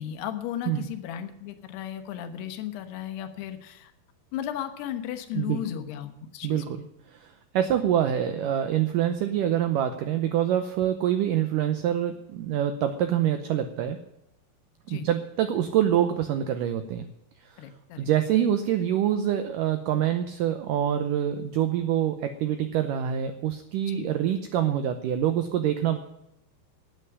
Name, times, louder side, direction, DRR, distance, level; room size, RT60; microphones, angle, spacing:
voice 1, 0.0-3.9 4.3-6.6 14.9-15.1 17.6-18.1 23.9-24.1, left 10 dB, 80° left, 8 dB, 3.2 m, -35 dB
voice 2, 6.4-14.0 14.9-17.1 17.4-17.7 18.0-26.0, right 10 dB, 85° right, 9 dB, 1.9 m, -26 dB
11.5 x 9.1 x 9.5 m, 0.86 s
omnidirectional pair, 4.7 m